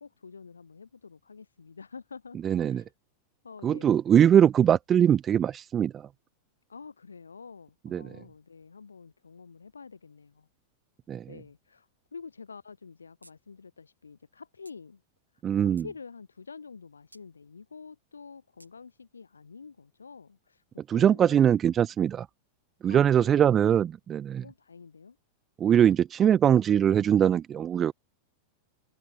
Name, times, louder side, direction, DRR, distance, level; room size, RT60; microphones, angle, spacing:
voice 1, 0.0-2.4 2.7-2.9 3.4-4.0 6.7-10.5 11.3-15.0 15.8-20.6 20.9-21.4 22.9-23.5 24.4-25.2, left 5 dB, 75° left, 2.1 m, -47 dB
voice 2, 2.4-2.8 3.6-6.1 7.9-8.1 11.1-11.3 15.4-15.8 20.9-22.3 22.8-24.4 25.6-27.9, right 9 dB, 25° right, 0.3 m, -22 dB
sound 1, 13.2-13.4 13.7-13.8 14.6-14.8 15.4-15.9 17.1-17.3 18.6-18.7, right 1 dB, 85° right, 1.5 m, -56 dB
figure-of-eight pair, 90°, 0 cm